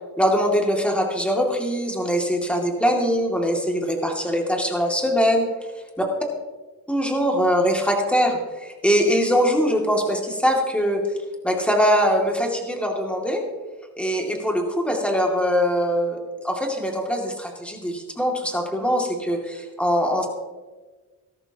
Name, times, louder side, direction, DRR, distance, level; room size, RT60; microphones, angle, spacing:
voice 1, 0.2-5.5 6.9-11.0 11.4-13.4 14.0-16.2 16.4-20.3, equal, 5° left, 0 dB, 2.6 m, -22 dB
17.0 x 13.5 x 3.0 m, 1.3 s
cardioid pair, 105°, 36 cm